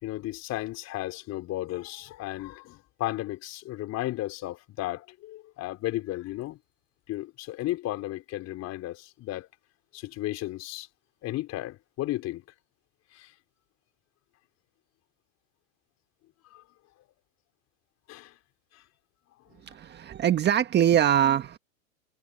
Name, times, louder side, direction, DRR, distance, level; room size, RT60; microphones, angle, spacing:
voice 1, 0.0-6.6 7.1-9.5 9.9-10.9 11.2-12.4 13.1-13.3 16.5-16.6 18.1-18.3 18.7-18.8, left 16 dB, 40° left, 4.2 m, -34 dB
voice 2, 19.6-21.6, right 10 dB, 25° right, 1.5 m, -23 dB
hypercardioid pair, 115°, 42 cm